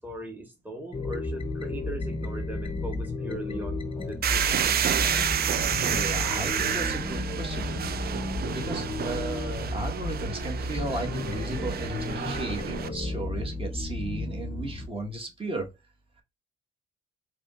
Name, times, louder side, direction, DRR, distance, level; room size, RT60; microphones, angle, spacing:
voice 1, 0.0-4.8, right 1 dB, 10° right, 1.2 m, -39 dB
sound 1, 0.9-14.9, left 2 dB, 30° left, 0.7 m, -33 dB
sound 2, 4.2-12.9, right 9 dB, 50° right, 0.5 m, -29 dB
voice 2, 5.8-15.7, right 2 dB, 30° right, 1.4 m, -35 dB
4.7 x 3.0 x 2.5 m
cardioid pair, 90°, 20 cm